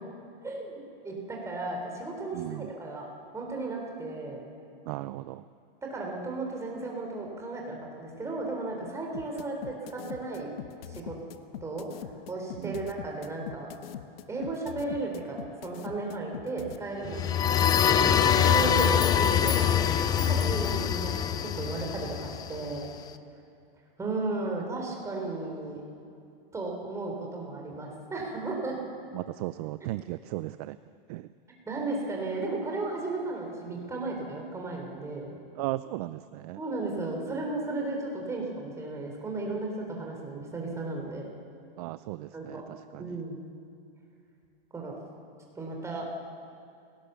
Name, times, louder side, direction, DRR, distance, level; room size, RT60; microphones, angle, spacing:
voice 1, 1.0-3.1 3.3-4.4 5.9-10.5 10.9-11.2 11.6-11.9 12.3-13.7 14.3-17.6 18.3-22.9 24.0-25.8 26.5-28.8 31.7-35.3 36.6-41.2 42.3-42.6 43.0-43.4 44.7-45.0 45.6-46.1, right 2 dB, 10° right, 0 dB, 3.8 m, -34 dB
voice 2, 2.3-2.7 4.9-5.4 12.6-12.8 29.1-30.8 31.1-31.3 35.6-36.6 41.8-43.2, right 17 dB, 40° right, 14 dB, 0.5 m, -36 dB
sound 1, 9.1-16.8, left 11 dB, 80° left, 1.3 m, -41 dB
sound 2, 17.0-22.8, left 8 dB, 15° left, 0.4 m, -24 dB
28.5 x 18.0 x 7.0 m, 2.6 s
supercardioid pair, 160°, 29 cm